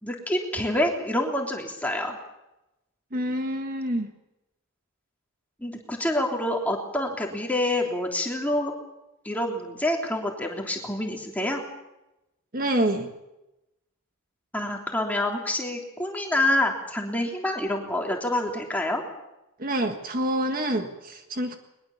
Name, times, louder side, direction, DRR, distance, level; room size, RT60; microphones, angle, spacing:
voice 1, 0.0-2.2 5.6-8.7 9.2-11.6 14.5-19.0, left 1 dB, 5° left, 1 dB, 3.3 m, -27 dB
voice 2, 3.1-4.1 12.5-13.1 19.6-21.5, right 1 dB, 40° right, 5 dB, 1.7 m, -27 dB
22.0 x 21.5 x 7.2 m, 0.93 s
head